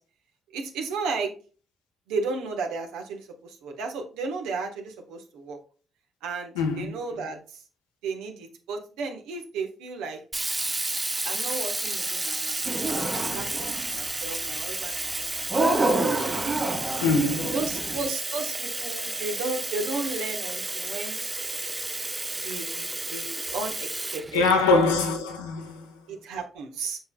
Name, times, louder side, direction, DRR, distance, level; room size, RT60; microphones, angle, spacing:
voice 1, 0.5-1.3 2.1-5.6 6.2-7.6 8.0-10.2 11.2-16.1 17.5-21.2 22.3-24.9 26.1-27.0, right 4 dB, 75° right, 1.2 m, -34 dB
voice 2, 6.5-6.9 17.0-17.6 24.3-25.9, left 3 dB, 85° left, 1.2 m, -23 dB
Sink (filling or washing), 10.3-25.1, right 2 dB, 25° right, 0.7 m, -32 dB
sound 1, 12.6-13.9 15.5-18.0, right 2 dB, 40° right, 2.6 m, -27 dB
7.6 x 5.6 x 2.3 m
hypercardioid pair, 45°, 0 cm